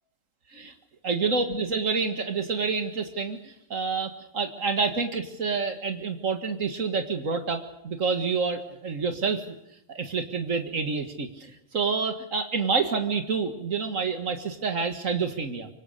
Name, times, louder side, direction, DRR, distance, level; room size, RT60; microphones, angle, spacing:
voice 1, 1.0-9.6 9.9-15.7, right 4 dB, 85° right, 6 dB, 2.3 m, -28 dB
25.5 x 24.5 x 6.7 m, 0.80 s
omnidirectional pair, 1.3 m